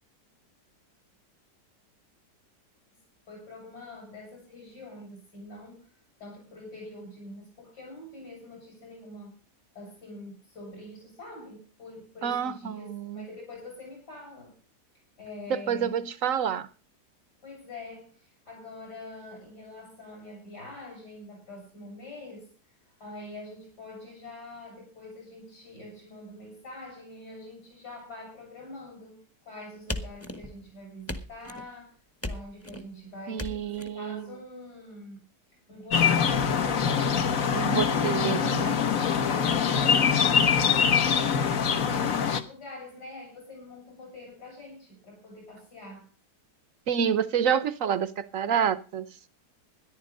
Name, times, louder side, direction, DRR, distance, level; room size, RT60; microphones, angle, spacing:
voice 1, 3.3-5.9 6.2-9.3 9.7-14.6 15.2-16.1 17.4-22.5 22.8-32.0 32.2-35.3 35.5-36.0 39.1-46.1, left 2 dB, 70° left, 6.8 m, -45 dB
voice 2, 12.2-13.3 15.5-16.7 33.3-34.3 37.5-38.8 46.9-49.1, right 8 dB, 60° right, 1.1 m, -28 dB
sound 1, 29.9-30.7 31.1-31.7 32.2-32.9 33.4-33.9, left 1 dB, 10° left, 1.0 m, -36 dB
sound 2, 35.9-42.4, left 7 dB, 55° left, 1.4 m, -24 dB
14.0 x 10.5 x 5.2 m
omnidirectional pair, 1.8 m